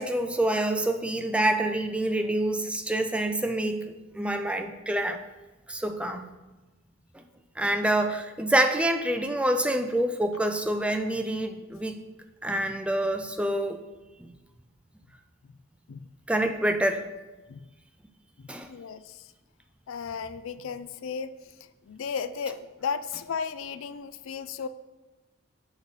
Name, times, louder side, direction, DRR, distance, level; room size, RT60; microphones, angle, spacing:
voice 1, 0.0-5.2 5.7-6.2 7.6-12.0 12.4-13.8 16.3-17.1 18.5-18.7, right 1 dB, 5° right, 6 dB, 0.4 m, -27 dB
voice 2, 18.4-19.3 19.9-21.5 21.8-24.7, left 6 dB, 65° left, 13 dB, 0.4 m, -35 dB
6.7 x 6.4 x 4.9 m, 1.1 s
head